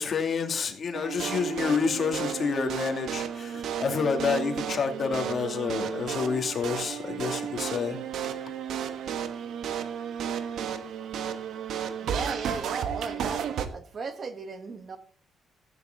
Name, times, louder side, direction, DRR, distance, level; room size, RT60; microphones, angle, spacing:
voice 1, 0.0-8.0, left 5 dB, 50° left, 5 dB, 2.6 m, -28 dB
sound 1, 0.9-13.7, right 8 dB, 75° right, 1.3 m, -33 dB
voice 2, 12.0-13.5 13.7-15.0, right 4 dB, 45° right, 9 dB, 1.7 m, -36 dB
15.0 x 9.7 x 3.9 m, 0.43 s
cardioid pair, 90°, 0 cm